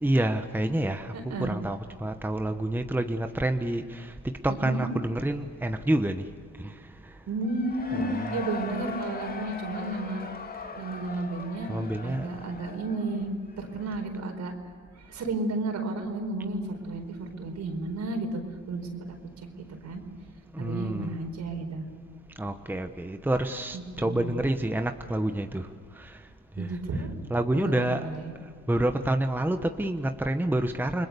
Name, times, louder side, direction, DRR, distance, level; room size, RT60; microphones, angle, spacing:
voice 1, 0.0-6.2 6.6-7.1 7.9-8.3 11.7-12.3 20.5-21.2 22.4-25.7 25.9-26.2 26.6-26.8 27.3-28.1 28.7-31.1, right 1 dB, 5° right, 7 dB, 1.2 m, -28 dB
voice 2, 1.1-1.5 4.5-4.9 7.3-10.2 10.8-11.7 12.0-13.3 13.6-14.5 14.9-18.4 18.7-19.2 19.8-20.0 20.6-21.8 23.7-24.4 26.6-27.1 27.5-28.3, right 2 dB, 65° right, 4 dB, 4.6 m, -32 dB
Cheering / Crowd, 7.4-14.1, left 4 dB, 30° left, 2.0 m, -40 dB
29.5 x 21.5 x 7.0 m, 2.1 s
cardioid pair, 90°, 30 cm